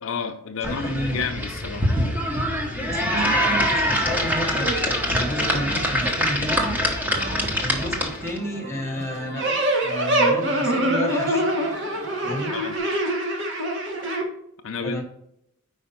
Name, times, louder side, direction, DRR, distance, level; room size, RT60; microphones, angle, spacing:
voice 1, 0.0-1.9 12.5-12.7 14.6-15.0, left 5 dB, 60° left, 5 dB, 0.5 m, -30 dB
voice 2, 0.6-1.2 2.8-4.7 5.0-6.7 7.6-9.4 9.8-11.5 12.2-12.5 14.8-15.0, equal, 10° left, 0 dB, 1.2 m, -31 dB
sound 1, 0.6-8.4, equal, 10° right, 0.9 m, -24 dB
sound 2, 7.1-12.8, right 2 dB, 85° right, 2.9 m, -41 dB
sound 3, 9.4-14.2, right 1 dB, 55° right, 1.4 m, -24 dB
5.1 x 4.8 x 5.6 m, 0.76 s
head